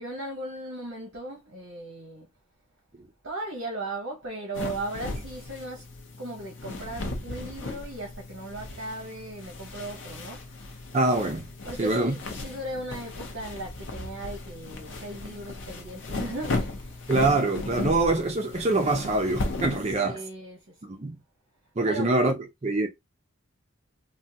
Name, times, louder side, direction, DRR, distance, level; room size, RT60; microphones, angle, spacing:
voice 1, 0.0-2.3 3.2-5.9 6.2-10.8 11.6-17.1 20.0-21.0 21.9-22.1, right 2 dB, 60° right, 0.9 m, -37 dB
sound 1, 4.5-20.0, left 2 dB, 60° left, 0.6 m, -36 dB
voice 2, 10.9-11.4 11.8-12.2 17.1-20.2 20.8-21.2 21.8-22.3 22.6-22.9, right 2 dB, 30° right, 0.5 m, -24 dB
3.4 x 2.2 x 2.7 m
head